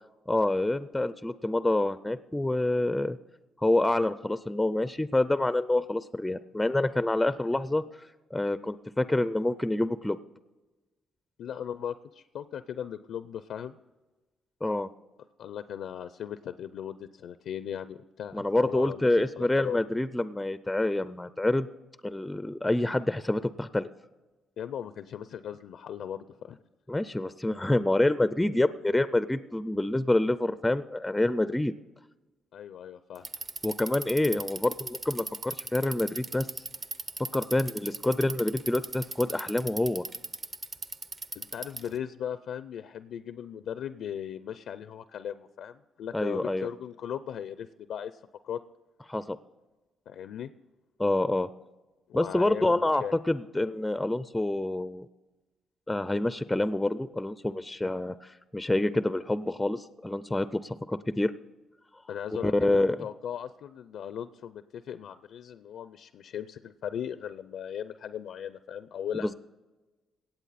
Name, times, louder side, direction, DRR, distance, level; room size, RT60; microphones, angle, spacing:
voice 1, 0.3-3.2 3.6-7.8 8.3-10.2 14.6-14.9 18.3-21.7 22.0-23.9 26.9-31.7 33.6-36.6 37.3-40.0 46.1-46.7 49.1-49.4 51.0-51.5 52.1-55.1 55.9-61.3 62.4-63.0 69.1-69.3, left 1 dB, 10° left, 14 dB, 0.4 m, -27 dB
voice 2, 11.4-13.8 15.4-19.8 24.6-26.6 32.5-33.3 41.4-48.6 50.1-50.5 52.1-53.1 62.1-69.3, left 9 dB, 75° left, 13 dB, 0.4 m, -38 dB
Bicycle, 33.1-42.0, right 3 dB, 30° right, 0.6 m, -37 dB
17.5 x 7.9 x 4.1 m, 1.2 s
cardioid pair, 95°, 0 cm